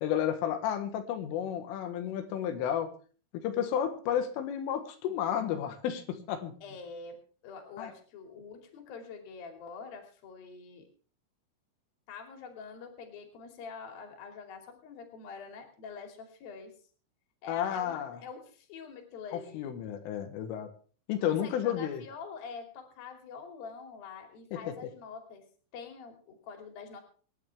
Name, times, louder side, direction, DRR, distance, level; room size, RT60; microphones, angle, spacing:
voice 1, 0.0-2.9 3.4-6.5 7.8-7.9 17.5-18.2 19.3-20.7 21.1-22.0 24.5-24.7, left 9 dB, 85° left, 8 dB, 4.0 m, -32 dB
voice 2, 6.6-7.2 7.4-10.9 12.1-16.7 17.4-19.7 21.3-25.5 25.7-27.0, left 5 dB, 50° left, 4 dB, 4.1 m, -45 dB
25.0 x 10.5 x 3.5 m, 0.40 s
omnidirectional pair, 5.7 m